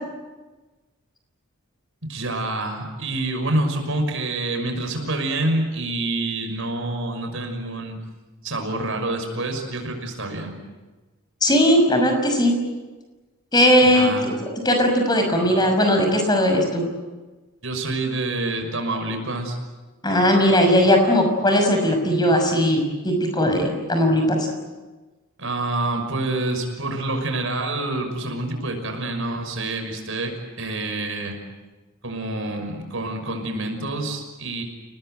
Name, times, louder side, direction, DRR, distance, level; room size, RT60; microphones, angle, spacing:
voice 1, 2.1-8.0 8.4-10.5 13.8-14.3 17.6-19.6 25.4-31.3 32.0-34.6, right 2 dB, 65° right, 4 dB, 6.0 m, -27 dB
voice 2, 11.4-12.5 13.5-14.1 14.6-16.8 20.0-24.4, equal, 20° left, 4 dB, 6.2 m, -18 dB
29.0 x 19.0 x 9.2 m, 1.2 s
head